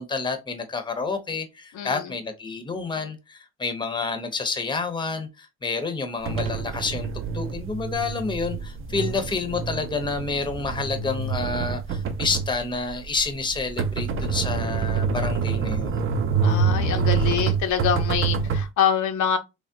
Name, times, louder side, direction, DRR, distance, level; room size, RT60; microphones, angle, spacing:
voice 1, 0.0-7.1 7.3-16.0, left 4 dB, 15° left, 0.6 m, -29 dB
voice 2, 1.7-2.1 16.4-19.4, left 8 dB, 75° left, 0.6 m, -25 dB
sound 1, 6.2-18.6, right 5 dB, 45° right, 0.5 m, -26 dB
3.4 x 2.0 x 2.6 m
cardioid pair, 90°, 30 cm